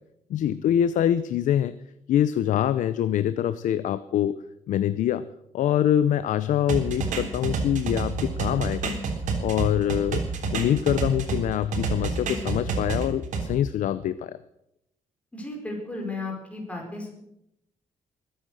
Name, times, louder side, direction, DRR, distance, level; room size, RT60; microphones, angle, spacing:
voice 1, 0.3-1.7 2.1-4.4 4.7-5.2 5.5-8.9 9.4-10.2 10.5-14.4, left 10 dB, 80° left, 14 dB, 0.6 m, -24 dB
sound 1, 6.7-11.4 11.7-13.4, right 4 dB, 75° right, 3.6 m, -28 dB
voice 2, 15.3-17.1, left 2 dB, 10° left, 0 dB, 5.1 m, -34 dB
21.5 x 10.5 x 6.4 m, 0.81 s
cardioid pair, 145°, 13 cm